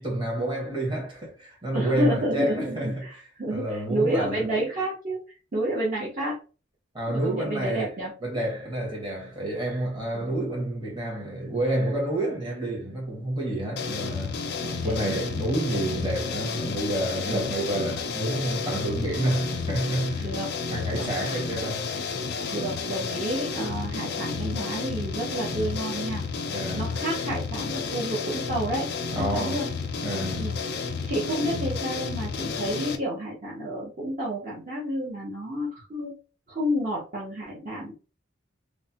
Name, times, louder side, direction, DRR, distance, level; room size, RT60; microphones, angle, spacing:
voice 1, 0.0-3.0 3.5-4.4 6.9-7.9 8.2-14.4 14.8-20.3 20.7-21.9 26.5-26.8 29.1-29.6 30.0-30.5, right 1 dB, 25° right, 1.1 m, -29 dB
voice 2, 1.7-5.2 5.5-6.4 7.1-8.1 10.1-10.4 14.6-15.0 17.3-17.5 20.2-21.1 22.5-26.2 26.8-29.7 30.4-30.5 31.1-36.1 36.5-37.9, right 1 dB, 40° right, 0.7 m, -30 dB
sound 1, 13.8-33.0, left 4 dB, 60° left, 0.4 m, -31 dB
3.2 x 2.1 x 2.8 m
head